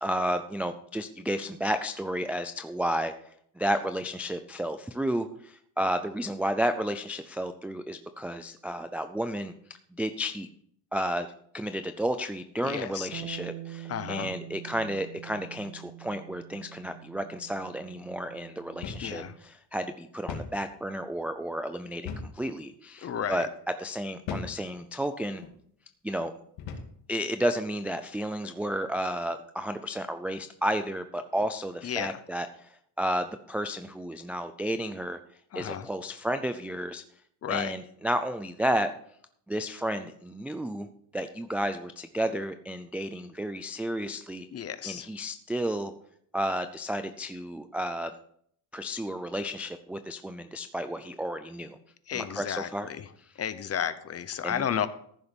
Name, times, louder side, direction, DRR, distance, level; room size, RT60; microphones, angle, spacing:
voice 1, 0.0-3.1 3.6-9.5 10.0-10.5 10.9-11.3 11.5-23.5 23.8-25.4 26.0-26.3 27.1-35.2 35.5-37.0 37.5-38.9 39.5-40.9 41.1-44.5 44.8-45.9 46.3-48.1 48.7-51.8 52.1-52.9 54.4-54.6, equal, 5° right, 8 dB, 0.3 m, -32 dB
voice 2, 12.6-13.1 13.9-14.3 19.0-19.3 23.0-23.5 31.8-32.2 35.5-35.9 37.4-37.7 44.5-45.1 52.1-53.1 53.4-54.9, left 9 dB, 30° left, 13 dB, 0.8 m, -32 dB
Bass guitar, 13.1-19.4, right 14 dB, 65° right, 0.5 m, -45 dB
sound 1, 18.8-19.1 19.4-19.5 20.3-20.6 22.0-22.4 23.1-23.3 24.3-24.6 25.3-25.6 26.6-27.0, left 6 dB, 90° left, 2.4 m, -37 dB
14.5 x 6.9 x 5.3 m, 0.66 s
cardioid pair, 145°, 46 cm